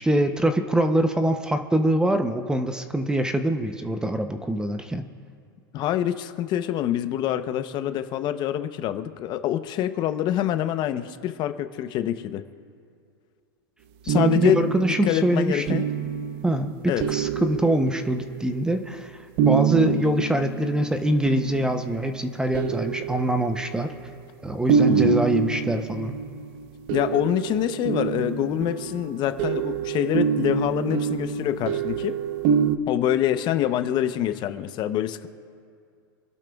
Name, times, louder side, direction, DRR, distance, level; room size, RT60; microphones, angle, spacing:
voice 1, 0.0-5.1 14.0-15.8 16.4-19.2 19.4-24.0 24.4-26.2, right 1 dB, 5° right, 7 dB, 0.7 m, -24 dB
voice 2, 5.7-12.4 14.1-14.7 15.0-15.9 16.9-17.1 24.9-25.2 26.9-32.1 32.9-35.3, left 12 dB, 40° left, 10 dB, 0.8 m, -26 dB
sound 1, 14.1-18.6 19.4-22.0 22.5-24.0 24.7-32.8, right 7 dB, 45° right, 0.8 m, -26 dB
27.5 x 12.0 x 2.4 m, 2.4 s
hypercardioid pair, 130°, 12 cm